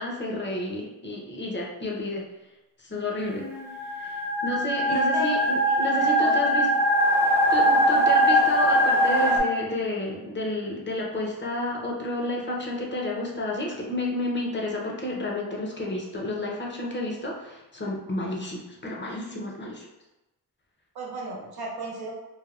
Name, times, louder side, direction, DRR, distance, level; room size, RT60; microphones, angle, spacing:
voice 1, 0.0-2.3 2.8-3.5 3.8-6.7 7.5-19.9, left 1 dB, 30° left, -2 dB, 0.7 m, -31 dB
voice 2, 3.3-3.8 4.8-6.5 7.8-8.0 20.9-22.2, right 1 dB, 85° right, -2 dB, 0.8 m, -35 dB
sound 1, 3.6-9.4, equal, 5° right, 0.6 m, -21 dB
3.3 x 2.2 x 2.4 m, 0.99 s
cardioid pair, 80°, 37 cm